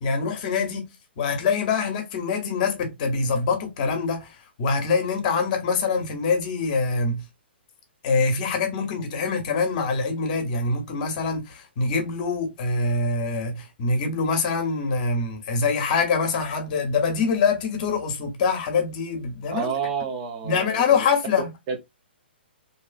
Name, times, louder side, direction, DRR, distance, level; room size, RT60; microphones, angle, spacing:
voice 1, 0.0-7.2 8.0-19.7 20.4-21.5, left 4 dB, 45° left, 0.8 m, -24 dB
voice 2, 19.5-21.0 21.7-21.8, right 6 dB, 40° right, 0.6 m, -29 dB
2.7 x 2.3 x 2.3 m
hypercardioid pair, 125°, 6 cm